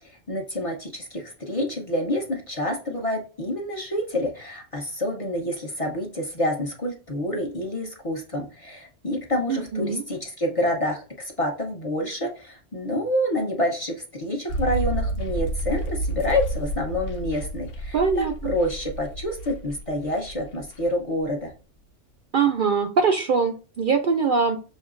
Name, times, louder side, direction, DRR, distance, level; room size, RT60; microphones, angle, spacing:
voice 1, 0.0-21.5, left 1 dB, 30° left, 1 dB, 0.8 m, -28 dB
voice 2, 9.5-10.0 17.9-18.5 22.3-24.6, right 5 dB, 60° right, 4 dB, 0.6 m, -22 dB
sound 1, 14.5-21.0 21.2-21.3, right 1 dB, 90° left, 1.2 m, -30 dB
6.3 x 3.0 x 2.5 m, 0.35 s
omnidirectional pair, 1.2 m